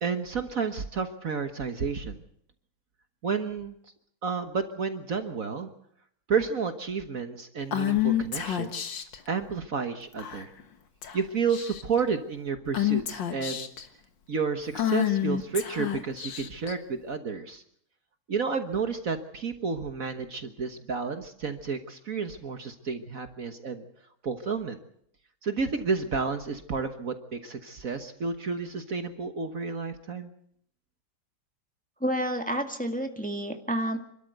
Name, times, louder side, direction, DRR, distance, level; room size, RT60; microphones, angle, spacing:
voice 1, 0.0-2.2 3.2-3.8 4.2-5.7 6.3-9.0 9.3-10.5 11.1-13.7 14.3-17.6 18.3-23.9 24.2-24.8 25.4-30.3, right 5 dB, 50° right, 7 dB, 1.6 m, -31 dB
Female speech woman speaking / Whispering, 7.7-9.2 10.2-10.6 11.0-11.2 11.5-12.0 12.7-13.8 14.7-16.7, left 11 dB, 80° left, 2.2 m, -28 dB
voice 2, 32.0-34.0, equal, 5° left, 5 dB, 1.7 m, -29 dB
27.5 x 13.0 x 8.0 m, 0.69 s
omnidirectional pair, 2.0 m